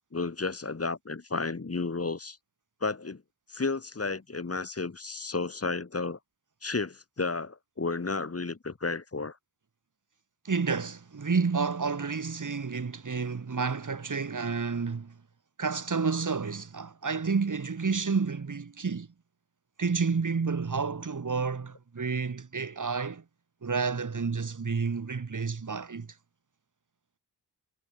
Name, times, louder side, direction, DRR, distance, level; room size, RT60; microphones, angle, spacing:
voice 1, 0.1-2.4 2.8-3.2 3.5-6.2 6.6-9.4, left 3 dB, 35° left, 7.9 m, -32 dB
voice 2, 10.4-15.1 15.6-19.1 19.8-23.2 23.6-26.1, right 5 dB, 50° right, 5.6 m, -30 dB
wide cardioid pair, 145°, 41 cm